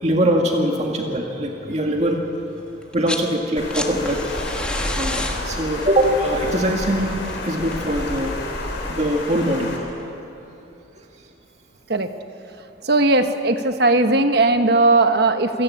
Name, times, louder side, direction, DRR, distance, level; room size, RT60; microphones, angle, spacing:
voice 1, 0.0-2.2 2.9-4.2 5.0-7.2 7.4-8.3 8.9-9.7, right 1 dB, 35° right, 1 dB, 2.0 m, -22 dB
sound 1, 2.8-3.3 3.6-8.4 9.7-9.8, left 1 dB, 5° left, 1.4 m, -32 dB
Water, 3.6-9.8, left 1 dB, 65° left, 4.8 m, -29 dB
voice 2, 12.8-15.6, right 2 dB, 55° right, 8 dB, 1.2 m, -17 dB
27.5 x 17.0 x 8.6 m, 2.8 s
head